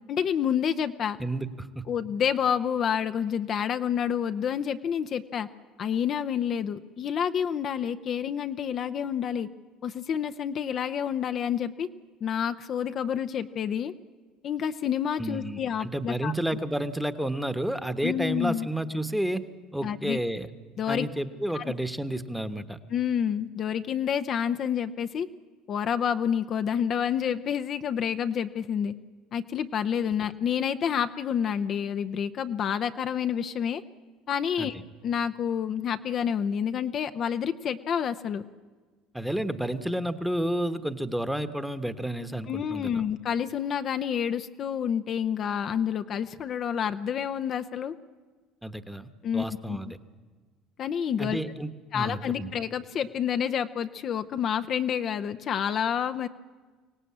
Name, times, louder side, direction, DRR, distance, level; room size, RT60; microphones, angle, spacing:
voice 1, 0.1-1.2 1.9-5.5 5.8-9.5 9.8-11.9 12.2-13.9 14.4-16.3 18.0-18.7 19.8-20.2 20.8-21.1 21.5-21.7 22.9-25.3 25.7-28.9 29.3-33.8 34.3-34.8 35.0-38.4 42.5-47.9 49.2-49.8 50.8-51.4 51.9-56.3, left 8 dB, 45° left, 9 dB, 0.7 m, -28 dB
voice 2, 1.2-1.8 15.2-19.4 19.7-20.5 20.9-22.8 34.6-34.8 39.1-43.0 48.6-50.0 51.2-52.5, right 1 dB, ahead, 10 dB, 1.2 m, -31 dB
24.0 x 17.5 x 8.6 m, 1.4 s
supercardioid pair, 100°, 0 cm